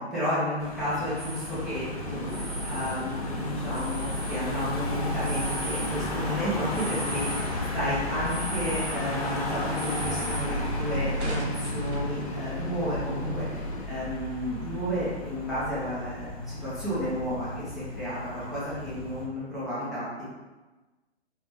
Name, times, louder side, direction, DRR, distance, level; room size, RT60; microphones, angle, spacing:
voice 1, 0.0-7.5 7.7-20.2, equal, ahead, -12 dB, 0.7 m, -32 dB
Car passing by / Engine, 0.6-19.3, left 1 dB, 30° left, 0.7 m, -33 dB
sound 1, 1.2-1.5 2.3-3.0 3.6-4.4 5.1-5.9 6.7-7.5 8.2-9.0 9.7-10.4 10.9-12.1 12.6-12.7 12.9-13.3 13.9-14.2, right 1 dB, 80° right, 1.3 m, -38 dB
sound 2, 2.0-13.9, left 3 dB, 70° left, 0.6 m, -41 dB
4.7 x 2.9 x 3.4 m, 1.2 s
figure-of-eight pair, 135°, 34 cm